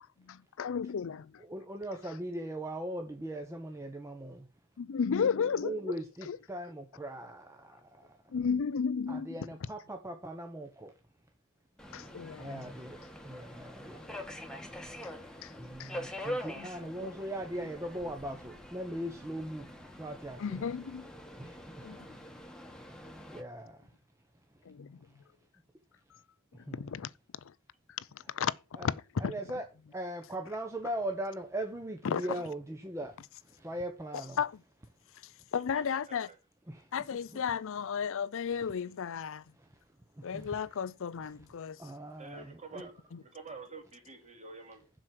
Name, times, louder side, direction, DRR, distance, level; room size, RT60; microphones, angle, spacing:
voice 1, 0.3-1.3 4.8-5.7 6.3-6.4 8.3-9.4 11.9-12.6 15.4-15.5 15.8-15.9 16.6-16.7 17.0-17.1 20.4-20.8 21.8-22.0 24.7-25.0 26.7-27.1 28.0-28.1 28.3-28.5 28.8-28.9 29.2-29.3 32.0-32.2 34.4-34.6 35.5-36.3 36.9-39.4 40.2-41.8, left 6 dB, 65° left, 0.5 m, -33 dB
voice 2, 1.4-4.5 5.6-8.2 9.1-10.9 12.4-13.0 13.2-14.0 15.6-19.7 20.0-20.6 21.4-21.6 23.1-23.8 26.7-26.9 28.7-28.9 29.2-29.7 29.9-33.2 33.5-34.4 36.7-37.0 37.3-37.4 38.6-38.7 39.6-39.7 40.2-40.6 41.8-42.9, right 1 dB, 15° right, 1.0 m, -39 dB
Subway metro underground, 11.8-23.4, left 1 dB, 5° left, 1.5 m, -44 dB
voice 3, 35.5-36.4 42.2-42.9 43.2-44.9, right 4 dB, 35° right, 2.8 m, -48 dB
7.6 x 6.1 x 7.5 m
head